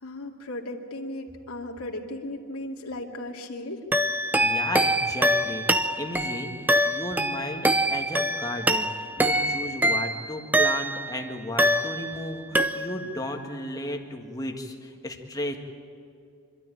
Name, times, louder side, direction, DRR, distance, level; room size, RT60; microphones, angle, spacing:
voice 1, 0.0-3.8, left 1 dB, 90° left, 0 dB, 2.5 m, -36 dB
Something spooky, 3.9-11.2 11.6-12.3 12.5-13.2, right 1 dB, 10° right, 0.6 m, -24 dB
voice 2, 4.2-15.6, left 1 dB, 15° left, 3 dB, 1.7 m, -34 dB
26.0 x 12.5 x 10.0 m, 2.5 s
head